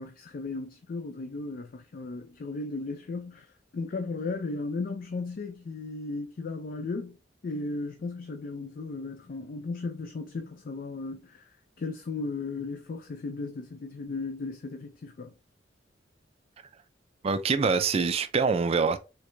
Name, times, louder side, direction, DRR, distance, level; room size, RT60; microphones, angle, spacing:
voice 1, 0.0-7.2 7.4-15.3, left 3 dB, 50° left, 0.4 m, -36 dB
voice 2, 17.2-19.0, right 5 dB, 35° right, 0.3 m, -25 dB
4.5 x 2.2 x 2.6 m
head